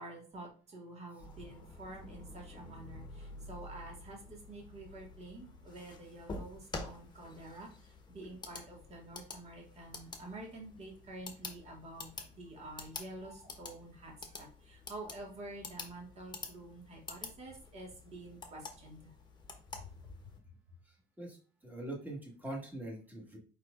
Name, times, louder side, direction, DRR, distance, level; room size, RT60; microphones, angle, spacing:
voice 1, 0.0-19.1 19.7-19.9, right 2 dB, 40° right, 0 dB, 1.8 m, -49 dB
sound 1, 1.2-20.4, left 3 dB, 25° left, 1.0 m, -49 dB
voice 2, 21.6-23.4, right 1 dB, 10° right, -1 dB, 1.6 m, -42 dB
4.8 x 4.4 x 2.5 m, 0.40 s
cardioid pair, 110°, 17 cm